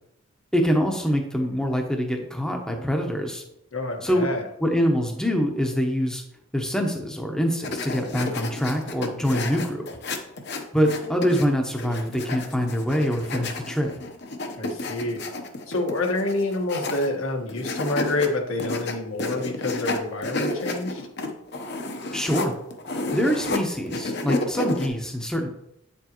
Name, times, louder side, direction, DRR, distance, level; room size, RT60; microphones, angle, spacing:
voice 1, 0.5-3.4 4.0-4.2 4.6-6.2 6.5-9.9 10.7-13.9 22.1-22.5 23.1-25.5, equal, 5° left, 2 dB, 0.8 m, -24 dB
voice 2, 3.7-4.4 14.6-15.2 15.7-21.1, left 2 dB, 75° left, 2 dB, 1.5 m, -27 dB
sound 1, 7.6-11.4 11.8-17.2 17.5-18.3 18.6-23.6 23.9-24.9, left 2 dB, 50° left, 0.9 m, -31 dB
9.0 x 7.0 x 3.0 m, 0.80 s
head